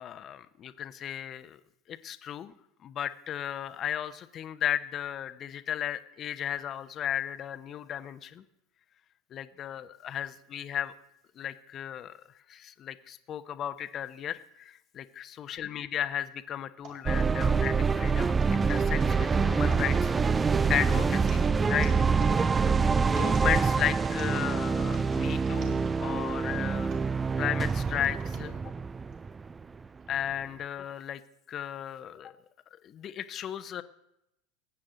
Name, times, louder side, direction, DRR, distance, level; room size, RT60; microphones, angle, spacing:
voice 1, 0.0-1.6 1.9-2.5 2.8-8.4 9.3-10.9 11.4-12.2 12.5-20.1 20.7-22.0 22.4-22.7 23.1-26.9 27.4-28.6 30.1-31.2 31.5-32.3 32.8-33.8, left 10 dB, 40° left, 12 dB, 0.8 m, -35 dB
sound 1, 16.8-26.4 26.9-28.5 29.1-29.2 30.1-30.3, right 3 dB, 50° right, 4.2 m, -48 dB
sound 2, 17.1-29.9, right 5 dB, 20° right, 0.3 m, -26 dB
20.5 x 8.8 x 3.9 m, 0.82 s
hypercardioid pair, 80°, 0 cm